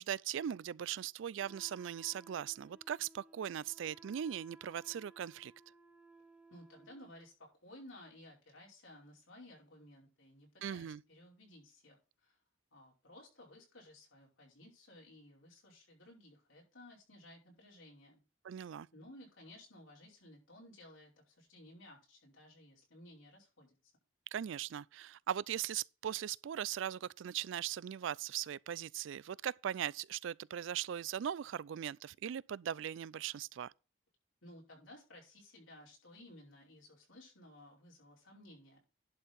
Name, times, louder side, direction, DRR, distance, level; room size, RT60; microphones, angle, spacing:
voice 1, 0.0-5.5 10.6-11.0 18.4-18.9 24.3-33.7, right 9 dB, 70° right, 0.3 m, -39 dB
Wind instrument woodwind instrument, 1.4-7.3, right 2 dB, 5° right, 0.7 m, -61 dB
voice 2, 6.5-12.4 12.7-18.2 18.9-23.8 34.4-38.8, left 1 dB, 80° left, 5.2 m, -57 dB
11.0 x 4.5 x 5.2 m
head